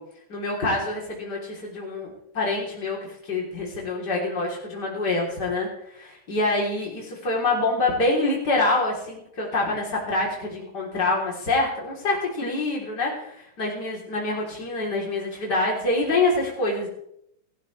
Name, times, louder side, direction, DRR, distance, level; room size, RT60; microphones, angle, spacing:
voice 1, 0.3-2.1 2.3-16.9, left 2 dB, 50° left, -2 dB, 4.0 m, -26 dB
24.0 x 13.5 x 3.3 m, 0.73 s
omnidirectional pair, 2.3 m